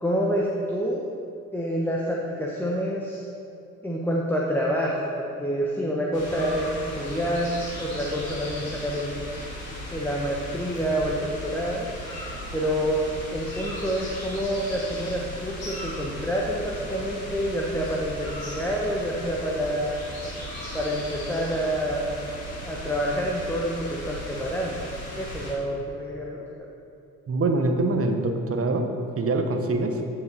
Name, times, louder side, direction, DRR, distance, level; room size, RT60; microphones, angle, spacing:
voice 1, 0.0-1.1 1.5-3.3 3.8-9.1 9.7-11.9 12.5-19.9 20.7-22.2 22.6-24.8 25.1-26.5, equal, 5° left, -3 dB, 1.0 m, -27 dB
sound 1, 6.1-25.5, left 1 dB, 90° left, 2.0 m, -37 dB
voice 2, 27.3-28.9 29.2-30.0, right 2 dB, 35° right, 5 dB, 1.0 m, -24 dB
9.4 x 5.4 x 4.1 m, 2.6 s
hypercardioid pair, 50°, 39 cm